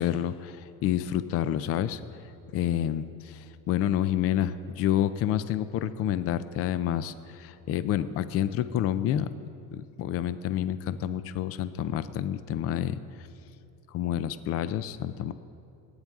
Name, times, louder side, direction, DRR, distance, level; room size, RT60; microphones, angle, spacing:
voice 1, 0.0-9.3 9.7-13.3 13.9-15.3, left 11 dB, 45° left, 13 dB, 0.5 m, -29 dB
27.0 x 9.7 x 3.6 m, 2.6 s
cardioid pair, 170°, 33 cm